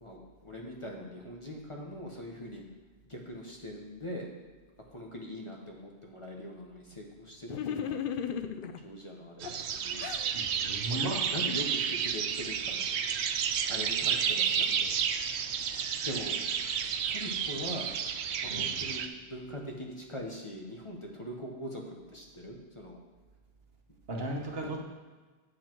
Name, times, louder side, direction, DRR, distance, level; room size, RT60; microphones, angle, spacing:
voice 1, 0.0-2.6 3.1-4.3 4.9-8.0 8.6-10.1 10.9-12.9 13.7-15.0 15.6-16.4 17.1-17.9 18.4-23.0, equal, 30° left, 0 dB, 1.1 m, -42 dB
sound 1, 7.5-8.8 9.4-10.3, left 8 dB, 65° left, 0.7 m, -35 dB
sound 2, 9.4-19.1, right 7 dB, 85° right, 0.9 m, -31 dB
voice 2, 10.3-11.2 18.5-18.7 24.1-24.8, right 1 dB, 65° right, 1 dB, 1.4 m, -35 dB
8.2 x 7.7 x 4.5 m, 1.4 s
omnidirectional pair, 1.1 m